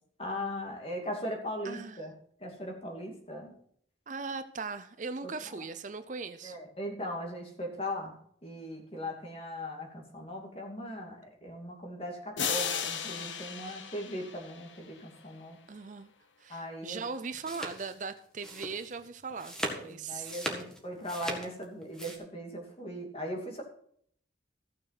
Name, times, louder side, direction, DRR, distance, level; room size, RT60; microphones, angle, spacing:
voice 1, 0.2-2.1 2.4-3.6 5.2-5.6 6.4-15.6 16.5-17.0 19.7-23.6, equal, 30° left, 1 dB, 2.6 m, -39 dB
voice 2, 1.6-2.1 4.1-6.6 13.7-13.8 15.7-16.1 16.4-20.3, right 4 dB, 40° right, 11 dB, 0.5 m, -39 dB
sound 1, 12.4-15.0, left 7 dB, 85° left, 1.2 m, -35 dB
sound 2, 17.0-22.2, equal, 5° left, 1.7 m, -39 dB
15.0 x 6.5 x 5.9 m, 0.64 s
head